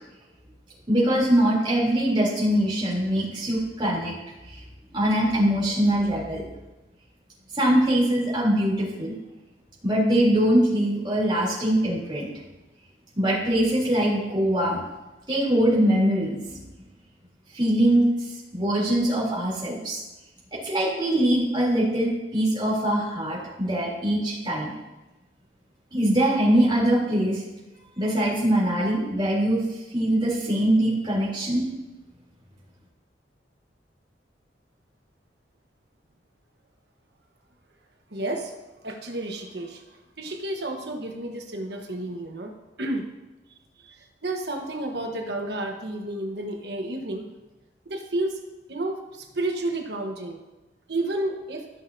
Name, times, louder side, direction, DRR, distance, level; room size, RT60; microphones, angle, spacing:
voice 1, 0.9-4.1 4.5-4.6 4.9-6.4 7.5-9.1 9.8-12.3 13.2-14.8 15.3-16.6 17.5-18.1 18.5-20.0 20.5-24.8 25.9-27.4 28.0-29.6 29.9-31.6, right 1 dB, 25° right, -6 dB, 3.4 m, -22 dB
voice 2, 38.1-38.5 38.8-39.8 40.2-42.5 42.8-43.1 43.8-47.3 47.8-48.4 48.7-50.4 50.9-51.7, right 1 dB, 65° right, 2 dB, 1.3 m, -31 dB
15.0 x 6.5 x 2.8 m, 1.1 s
head